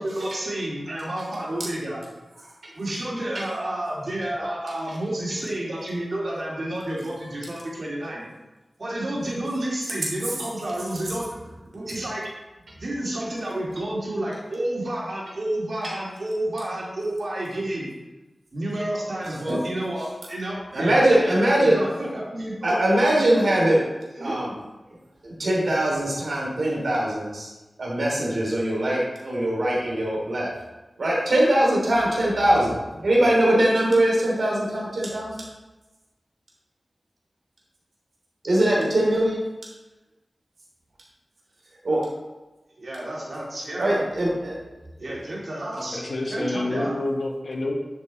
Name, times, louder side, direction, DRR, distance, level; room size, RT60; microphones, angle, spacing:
voice 1, 0.0-2.0 2.7-8.3 8.8-11.3 11.7-12.2 12.8-17.9 18.5-21.3 21.6-22.8 23.3-23.8 24.2-24.3 38.7-38.9 42.8-44.1 45.0-47.0, right 1 dB, 65° right, -4 dB, 2.8 m, -30 dB
voice 2, 20.7-21.8 22.6-23.8 24.2-24.5 25.2-27.5 27.8-30.5 31.0-35.4 38.4-39.4 41.8-42.0 43.8-44.5 45.0-45.1, right 1 dB, 85° right, -4 dB, 3.1 m, -21 dB
voice 3, 45.9-47.7, left 2 dB, 65° left, 0 dB, 1.6 m, -28 dB
10.5 x 5.3 x 4.2 m, 1.1 s
wide cardioid pair, 85°, 0 cm